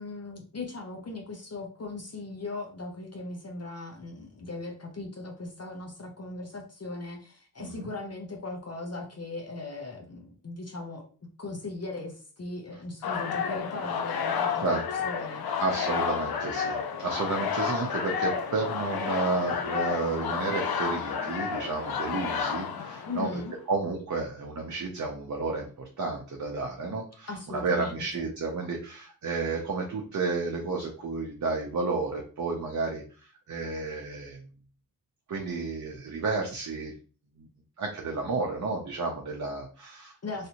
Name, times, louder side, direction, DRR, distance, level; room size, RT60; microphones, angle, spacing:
voice 1, 0.0-11.1 11.4-14.6 15.0-15.5 23.0-23.5 27.3-27.9 40.2-40.5, left 2 dB, 45° left, 1 dB, 0.7 m, -38 dB
sound 1, 13.0-23.5, left 6 dB, 90° left, 0.5 m, -31 dB
voice 2, 15.6-23.3 23.7-34.4 35.3-36.9 37.4-37.5 37.8-40.1, right 3 dB, 55° right, 0 dB, 0.7 m, -31 dB
3.2 x 2.7 x 2.8 m, 0.39 s
wide cardioid pair, 95°, 36 cm